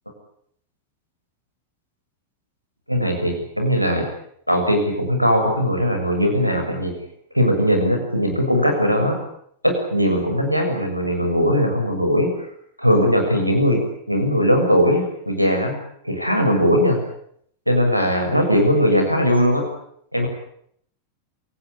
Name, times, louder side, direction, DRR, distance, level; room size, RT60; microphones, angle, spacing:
voice 1, 2.9-4.1 4.5-6.9 7.3-9.2 9.6-12.3 12.8-13.8 14.1-15.8 16.0-17.0 17.7-19.7 20.1-20.3, equal, 90° right, 4 dB, 6.8 m, -19 dB
27.5 x 18.0 x 10.0 m, 0.69 s
figure-of-eight pair, 90°, 0 cm